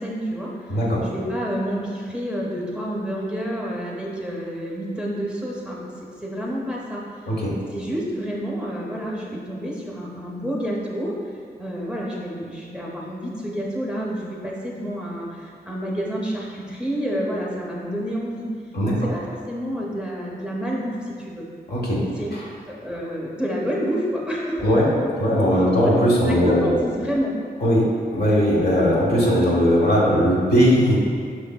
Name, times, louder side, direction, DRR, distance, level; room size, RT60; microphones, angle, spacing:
voice 1, 0.0-5.9 6.2-7.0 7.7-11.3 11.6-18.5 18.9-21.4 22.2-22.3 22.7-24.8 25.8-25.9 26.2-27.4, equal, 5° right, -4 dB, 0.7 m, -29 dB
voice 2, 0.7-1.0 7.3-7.5 18.7-18.9 21.7-22.0 24.6-24.8 25.2-26.7 27.6-31.0, equal, 70° left, -5 dB, 1.1 m, -19 dB
6.1 x 3.3 x 2.2 m, 2.2 s
wide cardioid pair, 75°, 17 cm